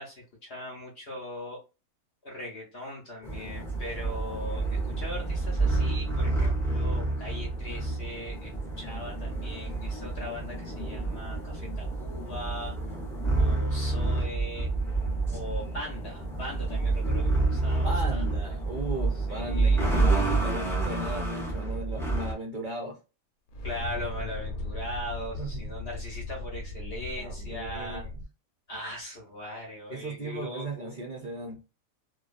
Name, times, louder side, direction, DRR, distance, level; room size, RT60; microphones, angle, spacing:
voice 1, 0.0-1.6 2.2-8.5 8.8-12.8 13.4-14.7 15.3-18.2 19.3-19.9 23.6-28.0 28.7-30.9, left 1 dB, 55° left, -2 dB, 0.8 m, -40 dB
sound 1, 3.2-22.3, right 3 dB, 5° left, 0.5 m, -28 dB
voice 2, 17.8-23.0 25.4-25.7 27.2-28.1 29.9-31.6, right 2 dB, 60° right, 0 dB, 0.5 m, -37 dB
sound 2, 23.5-28.2, left 2 dB, 90° left, 1.1 m, -37 dB
2.5 x 2.2 x 2.4 m, 0.30 s
omnidirectional pair, 1.5 m